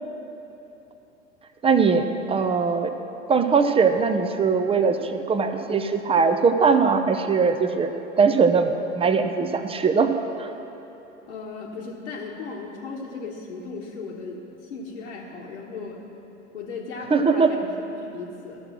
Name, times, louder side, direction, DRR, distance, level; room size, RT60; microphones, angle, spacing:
voice 1, 1.6-2.9 3.3-7.9 8.2-10.1 10.4-10.5 17.1-17.5, right 5 dB, 15° right, 7 dB, 0.6 m, -21 dB
voice 2, 11.3-16.0 16.5-18.6, left 4 dB, 75° left, -5 dB, 1.3 m, -36 dB
13.5 x 6.5 x 6.1 m, 3.0 s
figure-of-eight pair, 80°, 36 cm